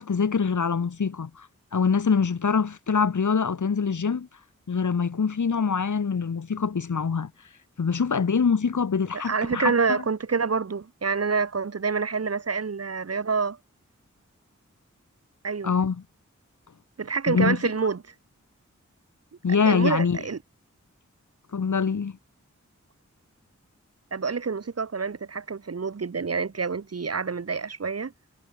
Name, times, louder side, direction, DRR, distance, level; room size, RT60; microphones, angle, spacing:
voice 1, 0.0-1.5 1.7-4.3 4.7-7.3 7.8-10.0 15.6-16.0 17.3-17.6 19.4-20.2 21.5-22.2, left 5 dB, 75° left, 1.1 m, -24 dB
voice 2, 9.1-13.6 15.4-15.7 17.0-18.0 19.7-20.4 24.1-28.1, right 5 dB, 55° right, 0.9 m, -27 dB
wide cardioid pair, 40°, 30 cm